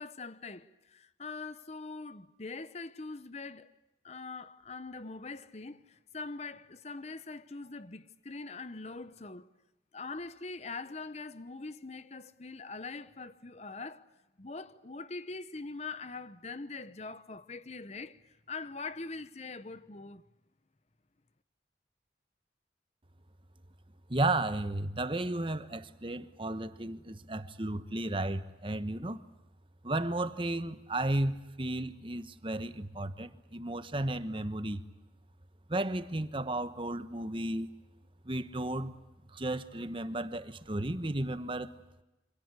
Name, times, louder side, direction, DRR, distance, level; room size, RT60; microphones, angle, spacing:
voice 1, 0.0-3.7 4.0-9.5 9.9-14.1 14.4-20.2, left 3 dB, 40° left, 0.9 m, -43 dB
voice 2, 24.1-29.2 29.8-34.8 35.7-37.7 38.2-38.9 39.3-41.7, right 1 dB, 30° right, 1.2 m, -33 dB
27.5 x 26.0 x 8.1 m
head